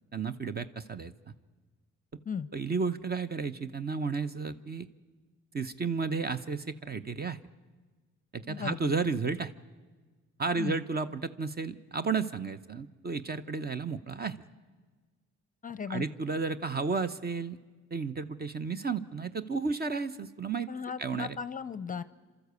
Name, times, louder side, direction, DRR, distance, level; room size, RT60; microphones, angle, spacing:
voice 1, 0.1-1.3 2.5-4.9 5.5-7.4 8.3-9.5 10.4-14.4 15.9-17.6 17.9-20.7 21.0-21.4, right 4 dB, 30° right, 12 dB, 0.8 m, -32 dB
voice 2, 8.5-8.9 10.6-10.8 15.6-16.1 20.7-22.0, left 6 dB, 25° left, 15 dB, 0.6 m, -36 dB
29.0 x 13.0 x 8.2 m, 1.4 s
cardioid pair, 90°, 30 cm